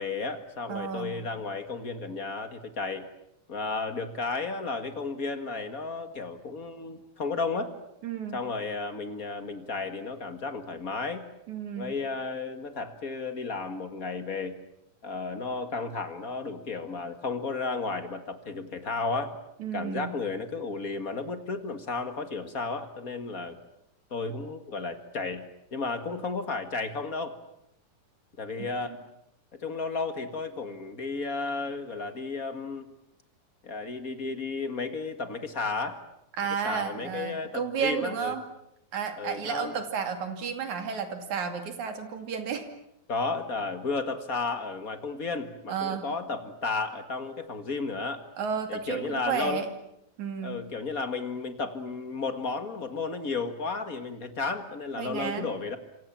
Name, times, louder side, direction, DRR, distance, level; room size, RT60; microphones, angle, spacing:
voice 1, 0.0-3.0 3.5-7.7 8.3-11.2 11.8-14.5 15.0-19.4 19.7-23.6 24.1-25.4 25.7-27.4 28.4-29.0 29.5-32.9 33.6-36.0 36.6-38.4 39.2-39.7 43.1-48.3 48.7-49.6 50.4-55.8, left 4 dB, 40° left, 8 dB, 1.3 m, -33 dB
voice 2, 0.7-1.2 8.0-8.4 11.5-11.9 19.6-20.1 28.6-29.0 36.4-38.4 38.9-42.7 45.7-46.0 48.4-49.7 50.2-50.6 55.0-55.5, right 7 dB, 55° right, 6 dB, 3.7 m, -32 dB
27.0 x 26.5 x 7.4 m, 0.79 s
omnidirectional pair, 4.0 m